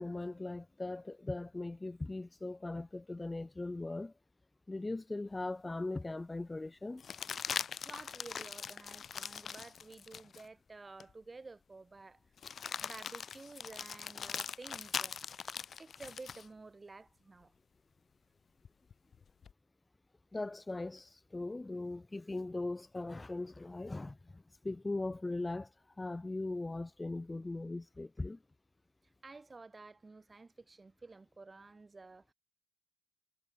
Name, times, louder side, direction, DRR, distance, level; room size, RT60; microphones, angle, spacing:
voice 1, 0.0-4.1 4.7-7.1 20.3-28.4, left 2 dB, 15° left, 0.6 m, -39 dB
sound 1, 5.4-5.5 7.0-10.5 11.0-11.1 12.4-16.5 18.6-19.5, left 7 dB, 50° left, 0.8 m, -41 dB
voice 2, 7.8-12.2 12.8-15.2 15.8-17.5 29.2-32.3, right 3 dB, 25° right, 2.7 m, -52 dB
cardioid pair, 90°, 0 cm